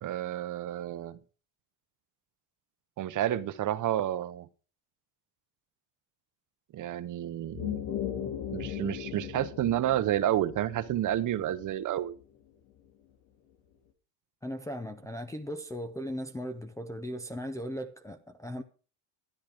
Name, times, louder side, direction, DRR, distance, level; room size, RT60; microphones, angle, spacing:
voice 1, 0.0-1.2 3.0-4.5 6.7-7.8 8.5-12.2, right 12 dB, 40° right, 0.8 m, -30 dB
sound 1, 7.4-12.2, left 10 dB, 75° left, 2.5 m, -38 dB
voice 2, 14.4-18.6, equal, 5° left, 0.5 m, -37 dB
13.0 x 10.5 x 4.9 m
cardioid pair, 170°, 46 cm